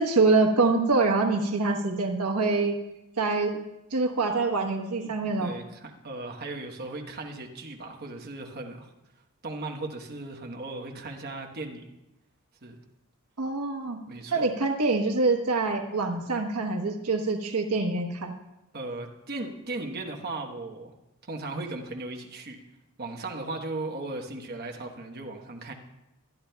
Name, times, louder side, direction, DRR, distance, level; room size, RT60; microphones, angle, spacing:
voice 1, 0.0-2.7 3.2-3.6 3.9-5.5 13.4-14.0 14.3-18.3, right 3 dB, 85° right, 4 dB, 1.2 m, -25 dB
voice 2, 5.4-8.9 9.4-11.9 12.6-12.8 14.1-14.5 18.7-20.9 21.2-22.6 23.0-25.7, right 2 dB, 45° right, 2 dB, 1.1 m, -37 dB
20.5 x 11.5 x 2.3 m, 0.93 s
head